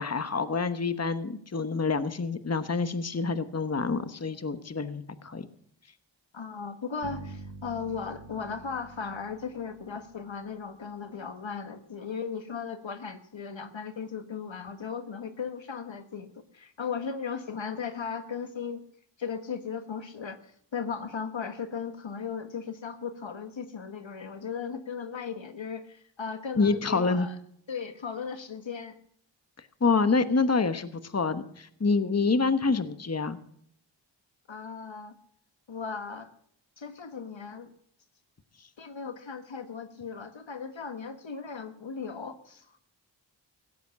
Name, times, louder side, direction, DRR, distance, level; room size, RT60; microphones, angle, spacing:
voice 1, 0.0-5.5 26.6-27.3 29.8-33.4, left 4 dB, 35° left, 12 dB, 1.1 m, -27 dB
voice 2, 6.3-18.8 19.2-20.4 20.7-27.3 27.7-28.9 34.5-35.1 35.7-36.3 36.8-37.7 38.8-42.8, left 6 dB, 80° left, 9 dB, 1.5 m, -37 dB
sound 1, 7.0-10.8, right 3 dB, 65° right, 1.4 m, -46 dB
17.0 x 8.0 x 6.9 m, 0.66 s
cardioid pair, 40°, 45 cm